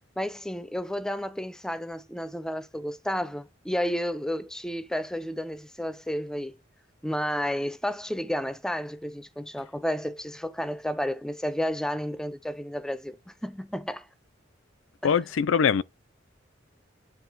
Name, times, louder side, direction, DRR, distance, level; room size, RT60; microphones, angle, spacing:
voice 1, 0.2-6.5 7.0-14.1 15.0-15.1, equal, 5° left, 0.4 m, -31 dB
voice 2, 15.0-15.8, left 7 dB, 85° left, 0.4 m, -22 dB
9.3 x 3.2 x 4.5 m
head